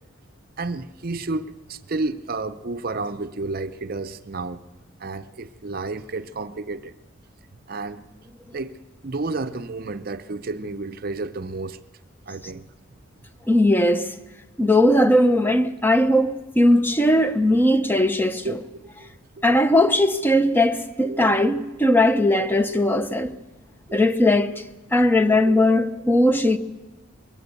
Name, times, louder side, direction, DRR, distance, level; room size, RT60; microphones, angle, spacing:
voice 1, 0.6-4.6 5.0-7.0 7.7-8.1 8.5-8.7 9.0-11.8 12.3-12.6 18.4-19.1 19.4-19.5 20.1-20.2 21.0-21.4 23.9-24.0 25.5-25.6, right 3 dB, 45° right, 0.6 m, -31 dB
voice 2, 13.5-14.1 14.6-18.6 19.4-23.3 23.9-24.5 24.9-26.6, left 1 dB, 10° left, 0.7 m, -19 dB
21.0 x 16.0 x 8.1 m
head